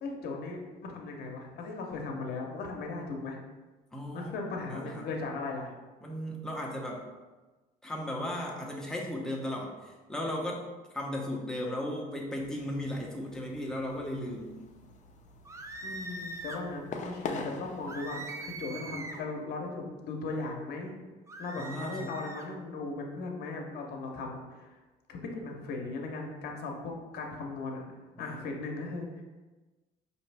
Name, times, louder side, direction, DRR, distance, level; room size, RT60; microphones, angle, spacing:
voice 1, 0.0-3.4 4.1-5.7 15.8-21.0 21.4-24.8 25.1-27.8 28.2-29.2, left 3 dB, 70° left, 2 dB, 0.8 m, -37 dB
voice 2, 3.9-4.3 4.7-5.1 6.0-7.0 7.8-10.6 10.9-14.6 21.6-22.1 28.1-28.5, left 1 dB, 5° left, -2 dB, 0.8 m, -36 dB
sound 1, 12.4-18.2, left 4 dB, 45° left, 0.5 m, -44 dB
sound 2, 15.5-16.7 17.9-19.3 21.3-22.5, right 2 dB, 15° right, 0.4 m, -42 dB
5.1 x 2.8 x 3.3 m, 1.2 s
cardioid pair, 110°, 17 cm